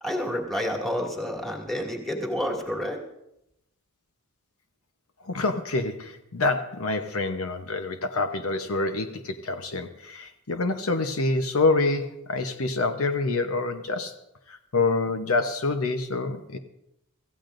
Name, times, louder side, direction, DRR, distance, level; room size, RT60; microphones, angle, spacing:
voice 1, 0.0-3.0, equal, ahead, 0 dB, 2.3 m, -29 dB
voice 2, 5.2-14.1 14.5-16.6, left 3 dB, 70° left, 7 dB, 0.9 m, -27 dB
25.5 x 15.0 x 2.6 m, 0.82 s
head